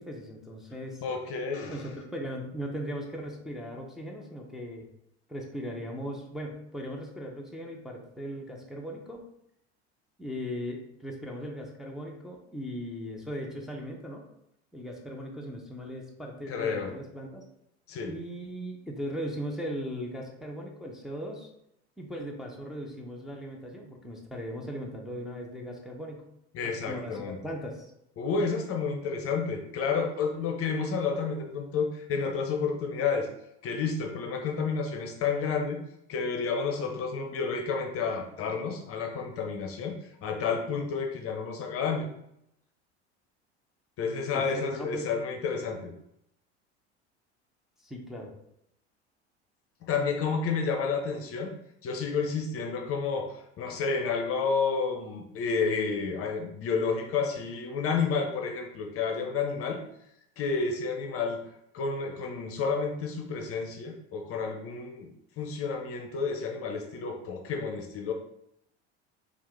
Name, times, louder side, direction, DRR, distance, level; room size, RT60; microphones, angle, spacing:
voice 1, 0.0-1.0 1.7-4.9 5.3-9.2 10.2-14.2 14.7-17.4 18.0-21.5 22.0-26.3 26.6-27.9 44.3-45.1 47.8-48.3, equal, ahead, -1 dB, 0.8 m, -38 dB
voice 2, 1.0-1.8 16.5-16.9 17.9-18.1 26.5-27.4 28.2-33.3 33.6-35.8 36.1-42.1 44.0-45.9 49.8-51.5 51.8-59.8 60.4-61.4 61.7-65.1 65.4-68.1, left 5 dB, 40° left, 4 dB, 0.7 m, -30 dB
4.6 x 2.5 x 3.5 m, 0.78 s
hypercardioid pair, 80°, 34 cm